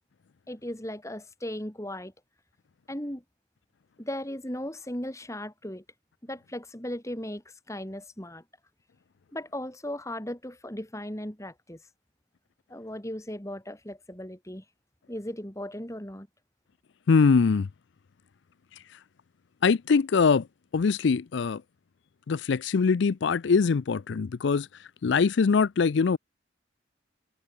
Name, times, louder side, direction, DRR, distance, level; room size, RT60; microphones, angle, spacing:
voice 1, 0.5-2.1 2.9-3.2 4.0-5.8 6.2-7.4 7.7-8.4 9.3-11.8 12.7-14.6 15.1-16.3, left 1 dB, 15° left, 2.9 m, -37 dB
voice 2, 17.1-17.7 18.7-18.8 19.6-20.5 20.7-21.6 22.3-26.2, left 5 dB, 65° left, 0.4 m, -23 dB
head